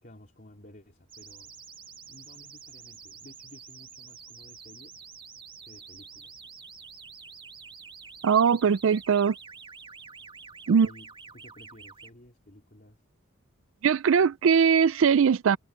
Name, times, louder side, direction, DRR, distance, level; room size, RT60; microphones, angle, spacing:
voice 1, 0.0-1.5 2.1-5.0 5.6-6.4 10.6-13.0, left 1 dB, 40° left, 3.9 m, -53 dB
sound 1, 1.1-12.1, right 5 dB, 25° right, 2.1 m, -48 dB
voice 2, 8.2-9.3 10.7-10.9 13.8-15.6, right 6 dB, 65° right, 0.4 m, -21 dB
head